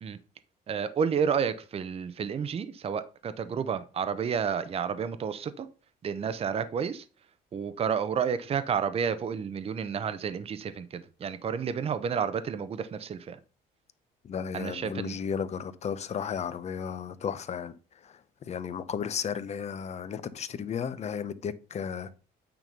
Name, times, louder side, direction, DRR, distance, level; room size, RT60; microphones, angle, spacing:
voice 1, 0.7-5.7 6.0-7.0 7.5-13.4 14.5-15.1, right 7 dB, 35° right, 0.7 m, -30 dB
voice 2, 14.2-22.2, left 7 dB, 40° left, 0.8 m, -34 dB
9.1 x 3.7 x 5.4 m
cardioid pair, 110°, 17 cm